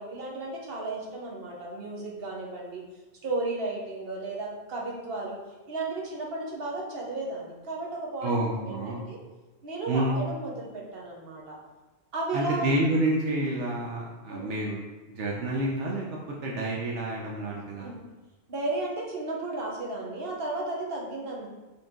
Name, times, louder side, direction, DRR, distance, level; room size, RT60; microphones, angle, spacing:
voice 1, 0.0-2.8 3.2-5.4 5.7-9.2 9.6-11.6 12.1-12.8 14.3-14.6 17.8-18.0 18.5-21.5, right 2 dB, 55° right, -2 dB, 1.3 m, -34 dB
voice 2, 8.2-9.0 9.9-10.2 12.3-14.8 15.1-16.0 16.4-17.9, right 1 dB, 75° right, -3 dB, 1.2 m, -28 dB
6.9 x 3.7 x 3.8 m, 1.2 s
omnidirectional pair, 1.2 m